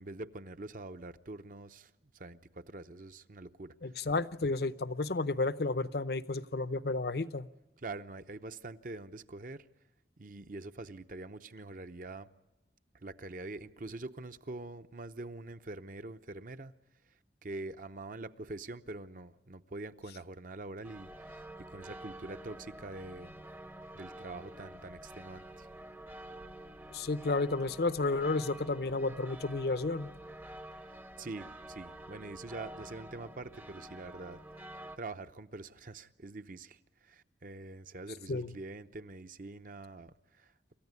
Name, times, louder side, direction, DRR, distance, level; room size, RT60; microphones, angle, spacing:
voice 1, 0.0-3.7 7.8-9.7 10.2-12.3 13.0-16.7 17.4-23.4 23.9-25.7 31.2-34.4 35.0-36.8 37.0-40.5, right 2 dB, 50° right, 10 dB, 0.8 m, -45 dB
voice 2, 3.8-7.5 26.9-30.1 38.3-38.5, left 3 dB, 60° left, 15 dB, 0.7 m, -32 dB
sound 1, 20.8-35.0, right 1 dB, 10° right, 0.7 m, -48 dB
27.5 x 14.5 x 9.6 m, 1.0 s
head